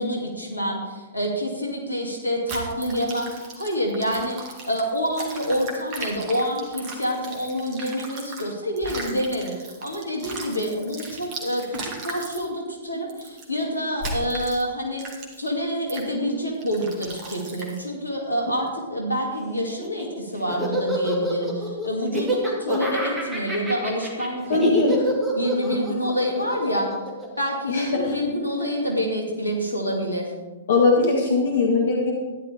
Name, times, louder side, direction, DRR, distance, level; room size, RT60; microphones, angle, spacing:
voice 1, 0.0-24.8 25.4-26.9 27.4-30.3, equal, 85° left, 0 dB, 2.7 m, -27 dB
sound 1, 2.5-8.4 8.8-12.4 13.1-13.5 14.0-14.6 15.0-15.5 15.9-16.1 16.6-17.9, right 2 dB, 30° right, 2.3 m, -37 dB
Laughter, 19.7-28.1, right 1 dB, 10° right, 2.6 m, -28 dB
voice 2, 24.5-25.0 27.7-28.1 30.7-32.1, left 3 dB, 60° left, 0 dB, 1.7 m, -20 dB
13.5 x 11.0 x 3.6 m, 1.3 s
figure-of-eight pair, 110°, 0 cm